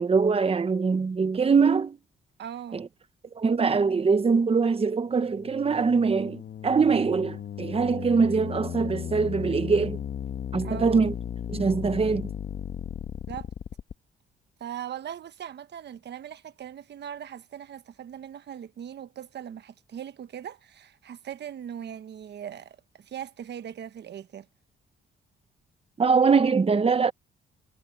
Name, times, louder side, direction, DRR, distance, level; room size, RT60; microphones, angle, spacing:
voice 1, 0.0-2.0 2.7-2.9 3.3-10.0 10.5-11.1 11.5-12.3 26.0-27.1, right 5 dB, 30° right, 1.2 m, -23 dB
voice 2, 2.4-2.9 10.6-11.0 13.3-13.5 14.6-24.5, right 9 dB, 60° right, 1.2 m, -40 dB
sound 1, 5.2-13.9, left 9 dB, 55° left, 1.3 m, -36 dB
cardioid pair, 90°, 20 cm